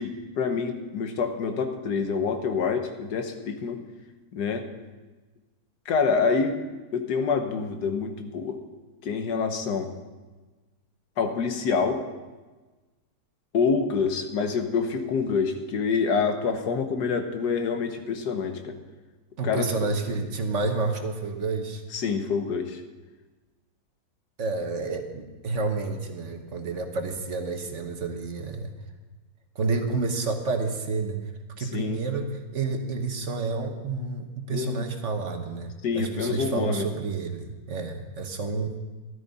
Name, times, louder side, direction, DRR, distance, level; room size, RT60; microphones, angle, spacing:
voice 1, 0.0-3.8 4.3-4.7 5.8-6.6 6.9-8.6 9.0-9.9 11.2-12.0 13.5-18.8 19.4-19.7 21.9-22.8 31.6-32.0 34.5-34.8 35.8-36.9, left 5 dB, 90° left, 7 dB, 1.7 m, -26 dB
voice 2, 19.4-21.8 24.4-28.7 29.5-31.3 31.6-38.8, right 3 dB, 50° right, 5 dB, 1.3 m, -29 dB
14.0 x 12.5 x 4.1 m, 1.3 s
omnidirectional pair, 1.7 m